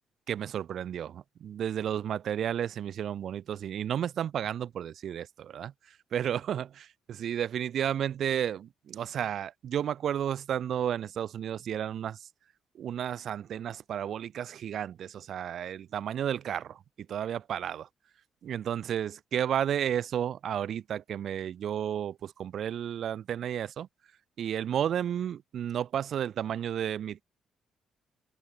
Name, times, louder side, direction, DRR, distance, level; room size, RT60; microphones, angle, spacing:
voice 1, 0.3-6.7 7.2-12.3 12.7-16.8 17.1-17.9 18.4-23.9 24.4-27.2, right 9 dB, 65° right, 1.6 m, -32 dB
cardioid pair, 90°, 0 cm